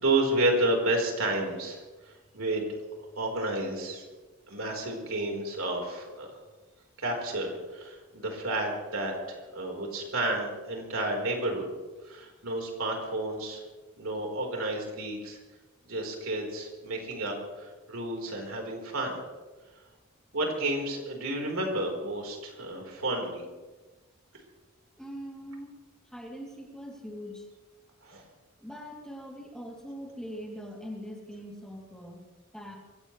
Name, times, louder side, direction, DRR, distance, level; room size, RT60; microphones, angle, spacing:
voice 1, 0.0-2.7 3.0-4.0 4.5-6.4 7.0-11.7 12.0-13.6 14.0-15.4 15.9-19.2 20.3-23.4 28.0-28.2, right 2 dB, 70° right, 0 dB, 4.5 m, -31 dB
voice 2, 25.0-25.8 26.1-27.5 28.6-32.2 32.5-32.8, equal, 5° left, -2 dB, 3.0 m, -42 dB
24.5 x 17.0 x 3.3 m, 1.3 s
head